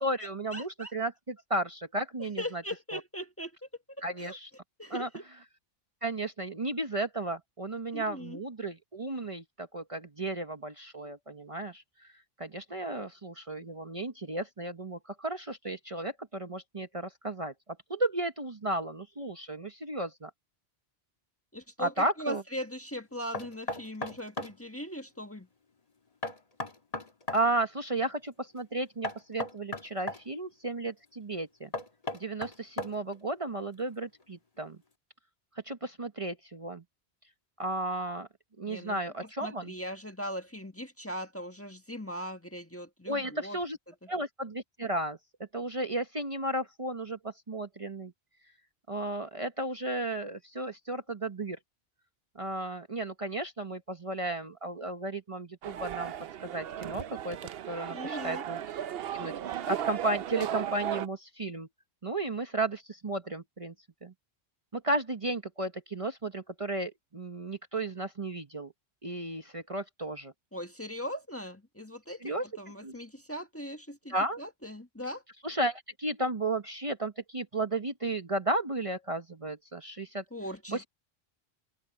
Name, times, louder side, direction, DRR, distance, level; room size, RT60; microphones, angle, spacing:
voice 1, 0.0-2.6 2.9-3.0 4.0-4.5 4.9-5.1 6.0-12.1 12.4-17.5 17.9-20.3 21.8-22.4 27.3-31.7 32.1-34.8 35.6-36.8 37.6-38.3 38.6-39.7 43.1-43.8 44.1-45.2 45.5-48.1 48.9-51.6 52.3-56.1 56.4-57.4 57.6-58.6 59.1-61.7 62.0-63.7 64.0-64.1 64.7-68.7 69.0-70.3 72.2-72.5 72.8-72.9 74.1-74.4 75.4-80.2 80.7-80.8, right 2 dB, 30° right, 1.2 m, -34 dB
voice 2, 0.5-0.9 2.4-3.7 4.2-4.4 4.8-5.3 7.9-8.4 21.5-25.5 38.7-39.0 39.4-43.6 57.9-58.4 70.5-75.2 80.3-80.8, equal, 15° left, 1.5 m, -39 dB
Knock, 23.3-24.6 26.2-27.4 29.0-30.2 31.7-33.2, left 2 dB, 35° left, 1.5 m, -36 dB
sound 1, 55.6-61.1, right 10 dB, 70° right, 0.8 m, -36 dB
open air
omnidirectional pair, 1.1 m